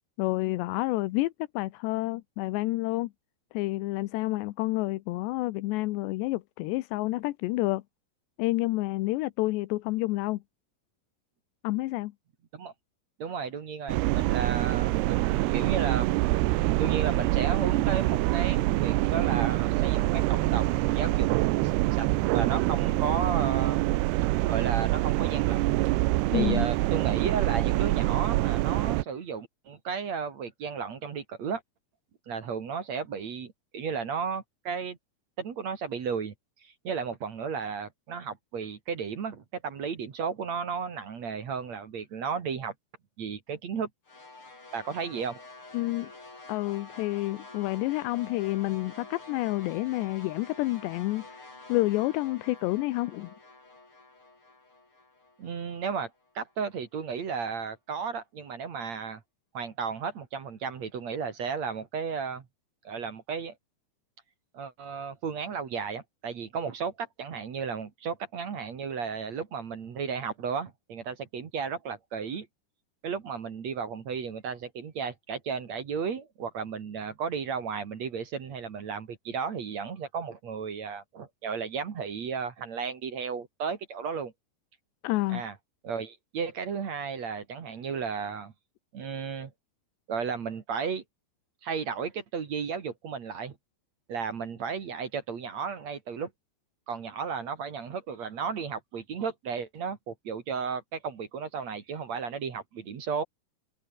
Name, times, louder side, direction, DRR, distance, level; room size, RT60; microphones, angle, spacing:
voice 1, 0.2-3.1 3.5-7.8 8.4-10.4 11.6-12.1 26.3-26.7 45.7-46.1 46.5-53.3 85.0-85.5, left 19 dB, 85° left, 3.0 m, -29 dB
voice 2, 13.2-16.1 16.8-21.3 21.6-23.8 24.5-25.8 26.3-31.6 32.3-35.0 35.4-36.3 36.6-42.7 43.2-43.9 44.7-45.4 55.4-56.1 56.3-59.2 59.5-62.4 62.8-63.6 64.5-72.5 73.0-84.3 85.3-85.5 85.8-88.5 88.9-89.5 90.1-91.0 91.6-93.5 94.1-96.3 96.9-103.2, right 6 dB, 45° right, 2.9 m, -34 dB
sound 1, 13.9-29.0, right 19 dB, 80° right, 2.7 m, -25 dB
sound 2, 44.1-56.3, left 2 dB, 30° left, 8.4 m, -48 dB
open air
omnidirectional pair, 4.9 m